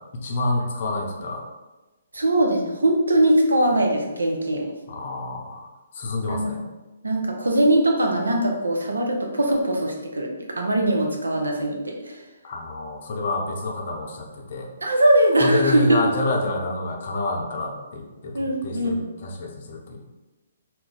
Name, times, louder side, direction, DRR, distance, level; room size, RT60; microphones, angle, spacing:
voice 1, 0.0-1.5 4.9-5.7 5.9-6.6 12.4-14.7 15.4-18.3 18.6-20.0, left 2 dB, 50° left, 1 dB, 0.6 m, -28 dB
voice 2, 2.1-4.7 6.3-6.5 7.0-10.3 10.6-12.2 14.8-16.0 18.3-19.0, right 1 dB, 90° right, 1 dB, 0.6 m, -21 dB
2.3 x 2.2 x 3.9 m, 1.1 s
hypercardioid pair, 135°, 0 cm